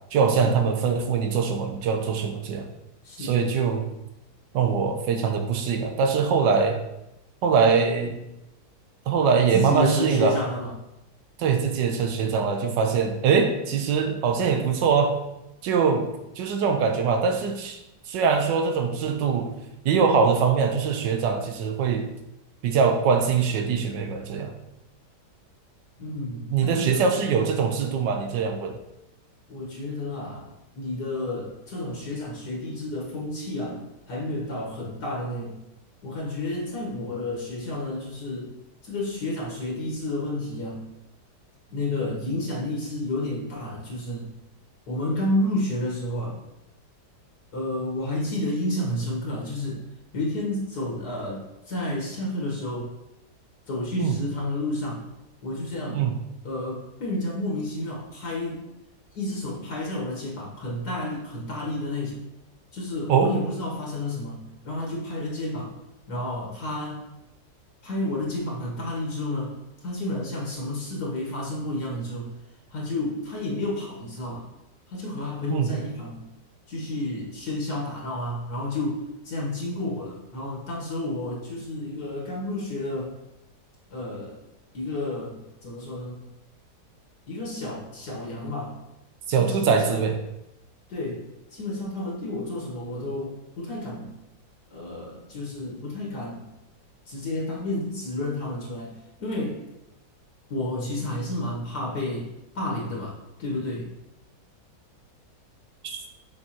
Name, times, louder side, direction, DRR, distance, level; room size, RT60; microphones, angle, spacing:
voice 1, 0.1-2.7 3.2-3.9 4.5-6.8 7.4-8.2 9.1-10.4 11.4-15.1 15.6-16.0 16.4-17.8 18.1-19.5 19.8-22.1 22.6-24.5 26.5-28.8 54.0-54.2 55.9-56.1 63.1-63.3 75.5-75.7 89.3-90.1 105.8-106.0, right 6 dB, 90° right, 5 dB, 1.5 m, -23 dB
voice 2, 3.0-3.6 9.5-10.7 26.0-27.1 29.5-33.8 34.1-35.6 36.0-38.5 38.8-40.8 41.7-44.3 44.9-46.4 47.5-49.8 50.1-52.9 53.7-55.0 55.4-56.0 56.4-58.7 59.1-62.2 62.7-65.8 66.1-67.0 67.8-72.3 72.7-74.4 74.9-76.2 76.7-83.1 83.9-84.4 84.7-86.3 87.3-88.8 89.4-90.0 90.9-94.1 94.7-96.4 97.1-99.6 100.5-102.3 102.5-103.1 103.4-103.9, left 1 dB, 65° left, -3 dB, 1.8 m, -31 dB
6.9 x 5.5 x 2.9 m, 0.89 s
omnidirectional pair, 1.8 m